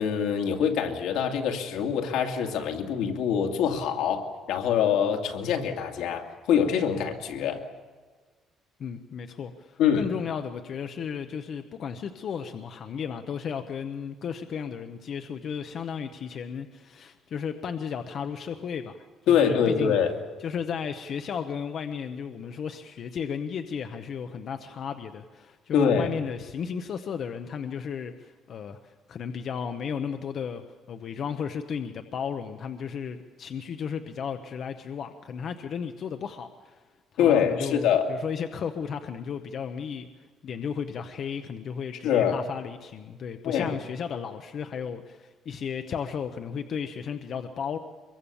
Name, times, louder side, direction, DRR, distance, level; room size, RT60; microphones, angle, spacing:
voice 1, 0.0-7.6 9.8-10.1 19.3-20.1 25.7-26.1 37.2-38.1 42.0-42.4 43.4-43.8, left 8 dB, 80° left, 3 dB, 2.4 m, -24 dB
voice 2, 8.8-19.0 19.3-20.0 20.4-30.6 30.9-36.8 37.1-40.1 40.4-47.8, left 7 dB, 40° left, 7 dB, 0.8 m, -34 dB
24.0 x 22.5 x 7.0 m, 1.4 s
cardioid pair, 175°, 0 cm